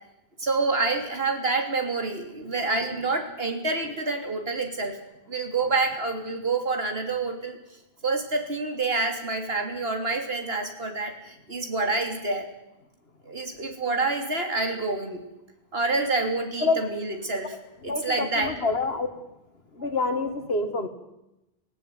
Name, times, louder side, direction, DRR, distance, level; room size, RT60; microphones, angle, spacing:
voice 1, 0.4-5.0 5.3-7.6 8.0-12.5 13.3-15.2 15.7-17.5 17.8-18.6, right 3 dB, 70° right, 5 dB, 3.1 m, -27 dB
voice 2, 17.8-19.1 19.8-20.9, left 3 dB, 70° left, 8 dB, 2.2 m, -26 dB
19.0 x 17.0 x 9.2 m, 0.90 s
omnidirectional pair, 1.1 m